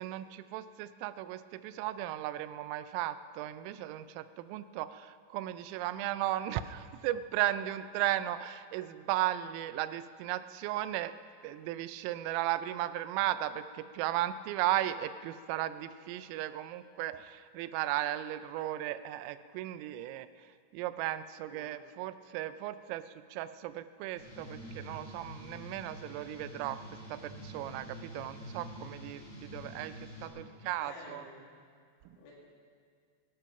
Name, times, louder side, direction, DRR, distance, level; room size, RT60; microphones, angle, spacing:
voice 1, 0.0-11.1 11.4-31.3 32.1-32.2, right 13 dB, 85° right, 13 dB, 3.2 m, -36 dB
sound 1, 24.2-30.3, equal, 15° left, 3.2 m, -47 dB
voice 2, 30.2-30.5 30.8-31.4 32.2-32.3, left 2 dB, 70° left, -4 dB, 5.3 m, -51 dB
17.5 x 12.5 x 5.7 m, 2.1 s
omnidirectional pair, 5.8 m